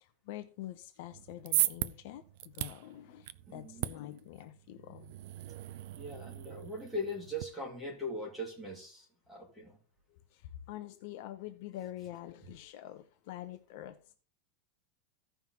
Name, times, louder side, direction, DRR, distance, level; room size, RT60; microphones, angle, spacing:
voice 1, 0.0-5.1 10.3-10.4 10.7-14.1, left 13 dB, 50° left, 0.7 m, -46 dB
sound 1, 1.1-7.4, right 15 dB, 50° right, 0.4 m, -38 dB
voice 2, 3.5-3.9 5.9-9.8, left 1 dB, 5° right, 2.2 m, -40 dB
15.5 x 5.6 x 3.0 m
supercardioid pair, 175°, 0 cm